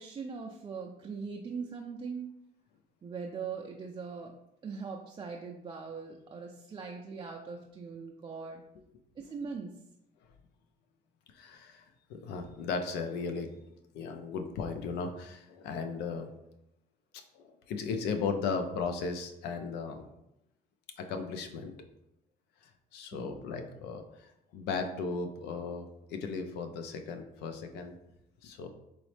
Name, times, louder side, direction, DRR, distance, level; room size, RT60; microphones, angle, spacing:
voice 1, 0.0-2.3 3.0-4.3 4.6-8.6 9.2-9.7 23.1-23.4, right 5 dB, 25° right, 0 dB, 0.4 m, -41 dB
voice 2, 11.3-11.8 12.1-13.5 13.9-16.3 17.3-20.1 21.0-21.7 22.9-27.9 28.4-28.7, left 5 dB, 85° left, 7 dB, 0.5 m, -36 dB
3.9 x 3.1 x 3.2 m, 0.84 s
cardioid pair, 110°, 17 cm